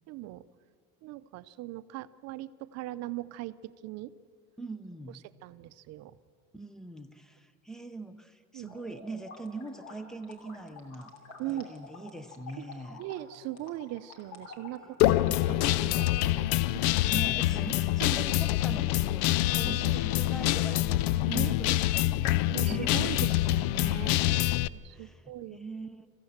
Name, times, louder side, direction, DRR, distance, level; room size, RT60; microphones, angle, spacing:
voice 1, 0.1-0.5 1.0-4.1 5.4-6.2 8.5-8.8 11.4-11.7 12.6-12.7 13.0-16.8 18.0-18.2 19.7-20.1 21.3-21.5 22.5-24.2 24.7-25.6, right 15 dB, 50° right, 14 dB, 0.6 m, -40 dB
voice 2, 4.6-5.2 6.5-11.1 11.5-13.0 17.0-23.1 24.3-26.1, right 2 dB, ahead, 11 dB, 0.7 m, -42 dB
sound 1, 8.7-15.7, left 3 dB, 50° left, 3.0 m, -49 dB
Guitar, 15.0-24.7, left 15 dB, 85° left, 0.5 m, -26 dB
25.5 x 15.0 x 7.3 m, 2.2 s
cardioid pair, 165°, 33 cm